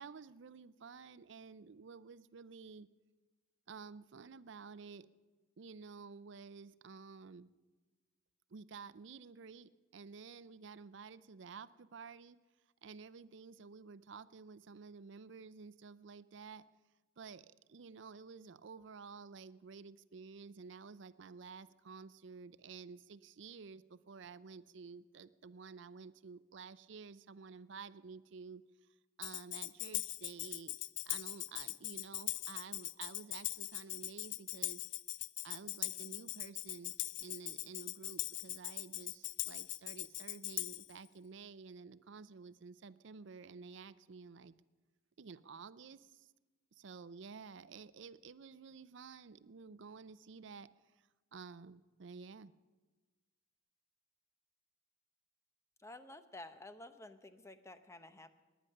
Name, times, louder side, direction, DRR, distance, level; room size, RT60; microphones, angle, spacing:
voice 1, 0.0-2.9 3.7-5.1 5.6-7.5 8.5-12.4 12.8-16.6 17.2-28.6 29.2-30.8 31.1-34.8 35.4-44.5 45.2-46.3 46.7-50.7 51.0-52.5, right 5 dB, 65° right, 16 dB, 0.5 m, -52 dB
Tambourine, 29.2-40.9, left 17 dB, 60° left, 0.4 m, -41 dB
voice 2, 55.8-58.4, left 2 dB, 15° left, 10 dB, 0.8 m, -52 dB
18.5 x 10.0 x 6.6 m, 1.2 s
head